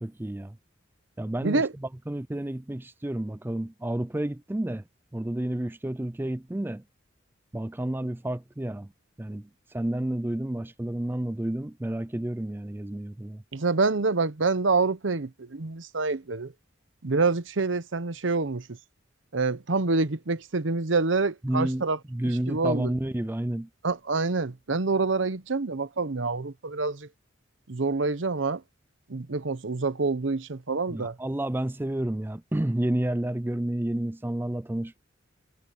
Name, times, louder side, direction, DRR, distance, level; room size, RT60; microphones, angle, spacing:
voice 1, 0.0-0.6 1.2-1.7 2.1-4.8 5.1-6.8 7.5-8.9 9.2-13.4 21.4-23.7 30.9-35.0, right 1 dB, 10° right, 0.4 m, -30 dB
voice 2, 1.4-1.7 13.5-16.5 17.0-18.8 19.3-22.0 22.5-22.9 23.8-27.1 27.7-28.6 29.1-31.2, right 3 dB, 75° right, 0.9 m, -27 dB
head